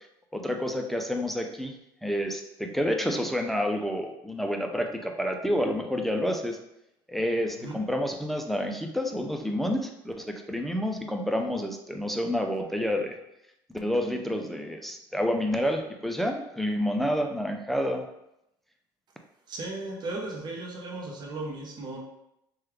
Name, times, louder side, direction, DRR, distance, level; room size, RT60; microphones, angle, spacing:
voice 1, 0.3-1.7 2.0-6.6 7.1-13.2 13.7-18.1, equal, ahead, 3 dB, 0.4 m, -29 dB
voice 2, 19.5-22.0, right 2 dB, 40° right, 0 dB, 0.7 m, -36 dB
3.2 x 2.3 x 3.2 m, 0.82 s
supercardioid pair, 85°, 11 cm